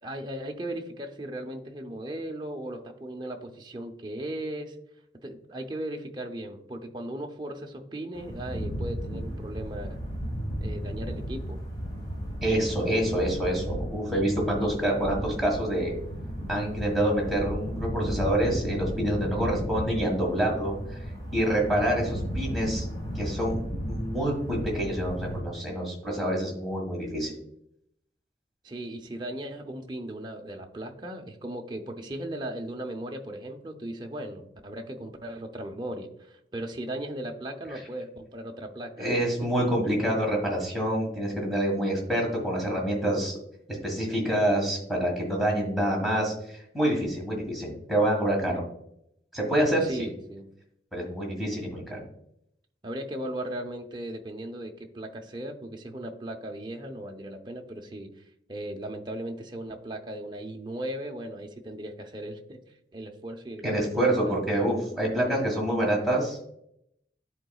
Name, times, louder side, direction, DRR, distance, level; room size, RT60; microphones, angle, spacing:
voice 1, 0.0-4.8 5.2-10.0 10.6-11.6 28.6-39.1 49.8-50.5 52.8-58.2 58.5-62.6 62.9-63.7 64.2-64.5, right 1 dB, 25° right, 3 dB, 0.6 m, -37 dB
sound 1, 8.1-25.4, equal, 25° left, 1.5 m, -34 dB
voice 2, 12.4-15.9 16.5-22.9 23.1-23.6 23.9-27.3 37.7-37.8 39.0-43.4 43.8-48.6 49.3-49.9 50.9-52.0 63.6-66.4, right 1 dB, ahead, -3 dB, 1.6 m, -27 dB
11.0 x 4.0 x 2.3 m, 0.76 s
head